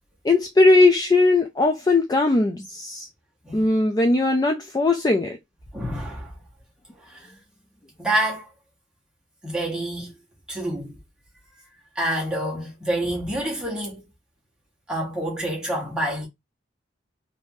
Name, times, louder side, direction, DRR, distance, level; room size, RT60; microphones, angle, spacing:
voice 1, 0.2-3.1 3.5-5.4, left 2 dB, 20° left, 0.3 m, -19 dB
voice 2, 5.7-6.3 7.0-7.3 8.0-8.5 9.4-10.1 10.5-10.9 11.9-14.0 14.9-16.3, right 1 dB, 5° right, 1.2 m, -27 dB
3.4 x 2.6 x 2.6 m
head